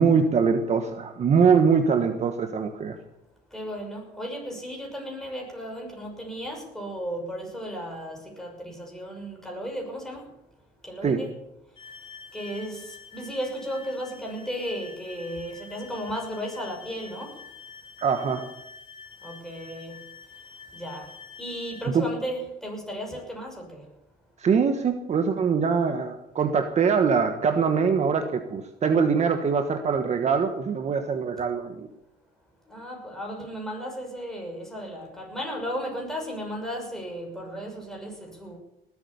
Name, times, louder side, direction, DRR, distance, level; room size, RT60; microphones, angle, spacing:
voice 1, 0.0-3.0 11.0-11.2 18.0-18.5 21.9-22.1 24.4-31.9, right 6 dB, 40° right, 6 dB, 1.3 m, -23 dB
voice 2, 3.5-10.3 10.8-11.3 12.3-17.4 19.2-20.0 20.7-21.1 21.4-23.8 32.7-38.6, equal, 5° left, 0 dB, 6.2 m, -35 dB
sound 1, 11.8-21.9, left 5 dB, 30° left, 2.4 m, -47 dB
19.5 x 8.6 x 7.0 m, 0.85 s
cardioid pair, 110°, 17 cm